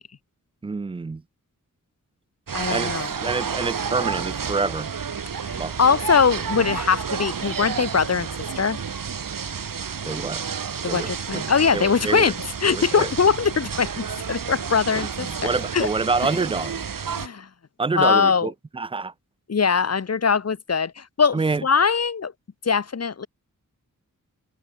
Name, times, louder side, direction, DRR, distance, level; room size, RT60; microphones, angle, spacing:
voice 1, 0.6-1.2 2.7-4.9 5.6-5.8 10.1-10.4 10.8-11.5 11.7-12.3 12.7-13.1 14.9-16.8 17.8-19.1 21.3-21.6, right 4 dB, 15° right, 0.3 m, -27 dB
voice 2, 2.5-3.1 5.4-8.3 8.6-8.8 10.8-12.3 12.6-15.9 17.2-17.5 18.0-18.5 19.5-22.3 22.6-23.3, left 5 dB, 50° left, 1.2 m, -22 dB
sound 1, 2.5-17.3, right 6 dB, 75° right, 2.8 m, -30 dB
wide cardioid pair, 110°, 33 cm